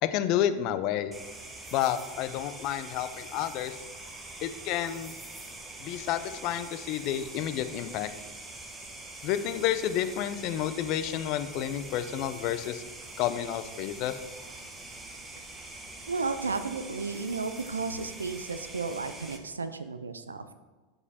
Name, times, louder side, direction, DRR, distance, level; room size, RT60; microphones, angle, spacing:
voice 1, 0.0-1.1 1.7-3.8 4.4-5.1 5.8-8.1 9.2-12.8 13.2-14.2, left 11 dB, 50° left, 11 dB, 0.4 m, -30 dB
sound 1, 1.1-19.4, right 2 dB, 15° right, 0.9 m, -44 dB
voice 2, 16.1-20.5, right 4 dB, 90° right, 11 dB, 0.3 m, -33 dB
5.0 x 4.8 x 4.2 m, 1.3 s
hypercardioid pair, 90°, 0 cm